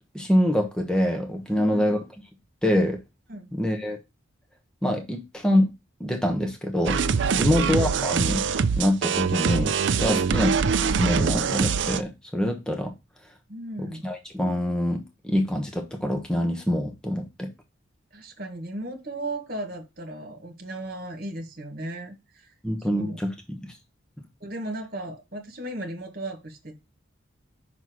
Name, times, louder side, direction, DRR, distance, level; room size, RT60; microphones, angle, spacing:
voice 1, 0.1-2.0 2.6-3.0 3.5-4.0 4.8-5.7 6.0-7.0 7.4-8.4 8.8-10.5 10.9-12.9 13.8-17.5 22.6-23.7, left 1 dB, 5° left, 1.1 m, -25 dB
voice 2, 1.5-2.0 3.3-3.5 7.3-7.6 10.0-10.3 13.5-14.1 18.1-22.5 22.8-23.3 24.4-26.8, right 1 dB, 50° right, 1.8 m, -36 dB
sound 1, 6.9-12.0, right 6 dB, 65° right, 0.4 m, -24 dB
5.9 x 4.4 x 6.1 m
head